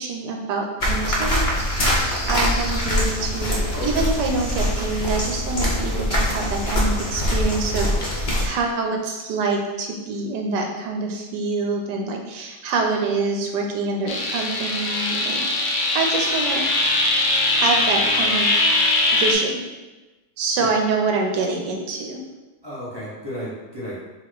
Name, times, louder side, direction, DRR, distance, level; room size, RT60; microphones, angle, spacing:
voice 1, 0.0-1.4 2.0-15.4 15.9-16.8 17.5-18.5 19.1-19.6 20.4-22.2, right 3 dB, 80° right, 2 dB, 1.3 m, -26 dB
sound 1, 0.8-8.5, left 1 dB, 40° left, 0.8 m, -23 dB
voice 2, 3.7-4.0 20.6-20.7 22.6-24.0, equal, 15° right, -8 dB, 1.1 m, -32 dB
sound 2, 14.1-19.3, left 2 dB, 85° left, 1.4 m, -21 dB
5.5 x 2.4 x 3.9 m, 1.1 s
omnidirectional pair, 1.9 m